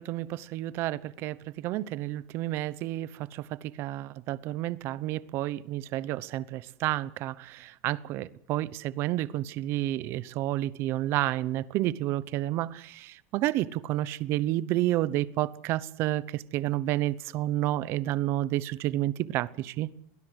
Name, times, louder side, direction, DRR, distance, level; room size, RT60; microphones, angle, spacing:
voice 1, 0.0-19.9, right 15 dB, 35° right, 0.8 m, -30 dB
21.5 x 19.0 x 8.1 m
supercardioid pair, 175°, 8 cm